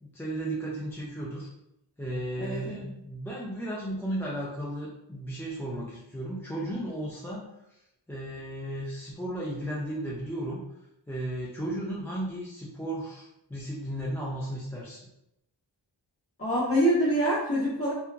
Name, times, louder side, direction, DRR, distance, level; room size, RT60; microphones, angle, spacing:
voice 1, 0.0-1.5 2.0-7.8 8.1-10.6 11.1-15.1, right 1 dB, 5° left, -5 dB, 0.4 m, -35 dB
voice 2, 2.4-2.9 16.4-17.9, equal, 30° left, -11 dB, 1.0 m, -25 dB
2.8 x 2.2 x 2.4 m, 0.83 s
wide cardioid pair, 70°, 46 cm